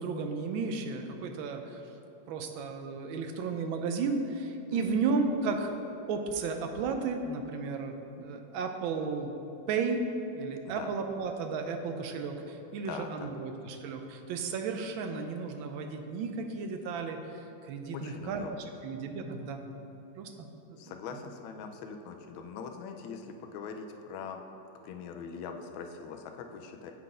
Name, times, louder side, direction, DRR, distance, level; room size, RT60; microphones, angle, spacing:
voice 1, 0.0-1.8 2.3-5.7 6.1-9.3 9.7-10.1 10.3-17.2 17.6-18.4 18.8-19.6 20.2-20.8, right 4 dB, 85° right, 5 dB, 1.4 m, -33 dB
voice 2, 4.7-5.0 10.6-10.9 12.8-13.3 17.9-18.7 20.8-24.4 24.8-26.9, left 6 dB, 90° left, 5 dB, 1.4 m, -42 dB
8.0 x 3.9 x 4.9 m, 2.9 s
omnidirectional pair, 2.1 m